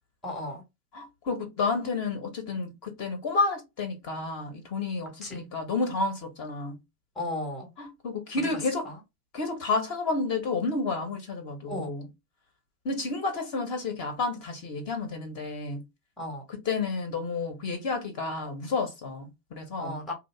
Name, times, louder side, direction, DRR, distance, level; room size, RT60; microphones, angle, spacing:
voice 1, 0.2-0.6 5.2-5.5 7.2-7.7 8.8-9.0 11.7-11.9 16.2-16.4 19.8-20.1, left 1 dB, ahead, 0.7 m, -34 dB
voice 2, 0.9-6.8 7.8-8.9 9.3-12.1 12.8-15.8 16.5-19.9, left 3 dB, 30° left, 0.8 m, -30 dB
2.8 x 2.0 x 3.1 m
hypercardioid pair, 110°, 48 cm